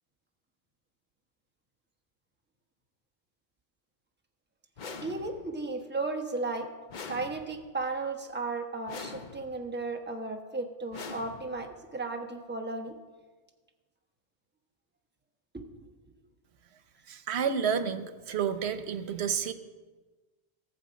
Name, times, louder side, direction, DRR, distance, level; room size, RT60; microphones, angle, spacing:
sound 1, 4.8-5.6 6.9-7.8 8.9-9.7 10.9-11.8, left 4 dB, 50° left, 0.8 m, -44 dB
voice 1, 5.0-6.7 7.1-12.9 15.5-15.7, right 3 dB, 10° right, 3 dB, 1.0 m, -35 dB
voice 2, 17.1-19.5, right 7 dB, 90° right, 11 dB, 1.0 m, -30 dB
17.5 x 7.2 x 5.2 m, 1.3 s
omnidirectional pair, 1.1 m